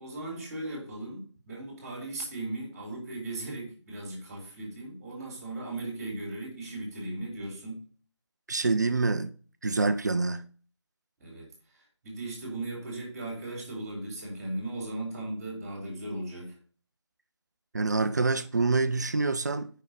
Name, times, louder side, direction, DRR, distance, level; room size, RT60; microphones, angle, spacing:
voice 1, 0.0-7.8 11.2-16.6, right 2 dB, 15° right, 3.5 m, -37 dB
voice 2, 8.5-9.3 9.6-10.5 17.7-19.7, right 3 dB, 40° right, 0.5 m, -26 dB
7.3 x 5.5 x 6.6 m
figure-of-eight pair, 165°, 15 cm